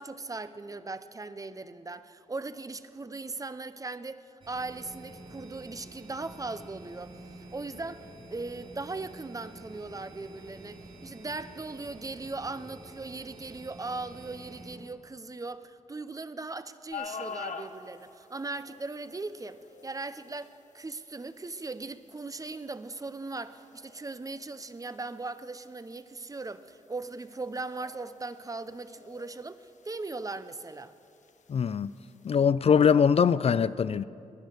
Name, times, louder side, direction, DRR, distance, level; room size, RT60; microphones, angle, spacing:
voice 1, 0.0-7.2 7.5-30.9, right 3 dB, 25° right, 0.7 m, -39 dB
sound 1, 4.4-14.8, right 2 dB, 50° right, 3.9 m, -49 dB
sound 2, 16.9-32.5, left 5 dB, 65° left, 1.0 m, -48 dB
voice 2, 31.5-31.9 32.2-34.0, left 7 dB, 50° left, 0.4 m, -22 dB
19.0 x 10.5 x 6.6 m
cardioid pair, 70°, 13 cm